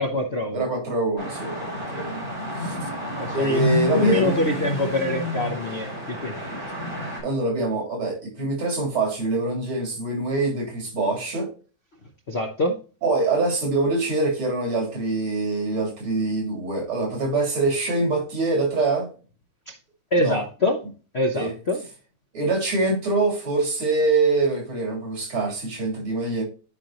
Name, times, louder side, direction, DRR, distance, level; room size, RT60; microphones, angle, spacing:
voice 1, 0.0-0.7 3.2-3.6 3.9-6.4 12.3-12.8 19.7-19.8 20.1-20.8 21.1-21.8, left 2 dB, 60° left, 0.7 m, -24 dB
voice 2, 0.5-2.2 2.6-2.9 3.3-4.3 6.5-6.6 7.2-11.5 13.0-19.1 20.2-20.4 21.3-21.5 22.3-26.4, right 2 dB, 90° right, 4.0 m, -24 dB
sound 1, 1.2-7.2, equal, 40° right, 5.4 m, -29 dB
11.5 x 5.2 x 2.9 m
omnidirectional pair, 2.3 m